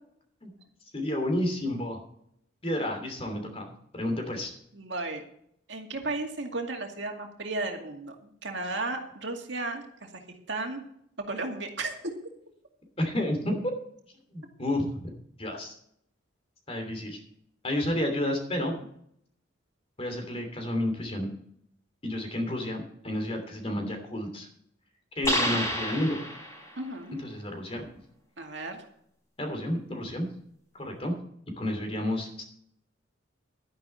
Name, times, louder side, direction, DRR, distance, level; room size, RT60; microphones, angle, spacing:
voice 1, 0.9-2.0 2.6-3.7 3.9-4.5 13.0-13.7 14.3-15.1 15.4-15.7 16.7-17.2 17.6-18.7 20.0-21.3 22.0-24.5 25.1-26.2 27.2-27.9 29.4-30.3 30.7-31.1 31.6-32.4, left 1 dB, 30° left, 4 dB, 3.0 m, -30 dB
voice 2, 4.7-5.2 5.7-10.2 10.5-10.8 11.3-11.9 26.8-27.2 28.4-28.8, right 2 dB, 65° right, 2 dB, 2.3 m, -34 dB
sound 1, 25.2-26.8, equal, 15° left, 4.6 m, -29 dB
11.5 x 10.5 x 4.4 m, 0.69 s
head